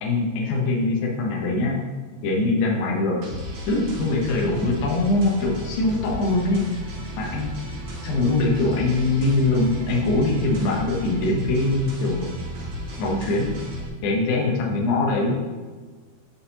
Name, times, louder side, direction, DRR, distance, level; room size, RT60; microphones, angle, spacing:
voice 1, 0.0-1.8 2.2-3.2 3.7-6.7 7.2-7.5 8.0-12.3 13.0-13.5 14.0-15.4, left 2 dB, 85° left, -1 dB, 1.7 m, -22 dB
sound 1, 3.2-13.9, equal, 65° right, 4.1 m, -34 dB
Musical instrument, 4.1-11.1, right 1 dB, 85° right, 4.1 m, -43 dB
12.0 x 4.4 x 2.8 m, 1.4 s
omnidirectional pair, 5.0 m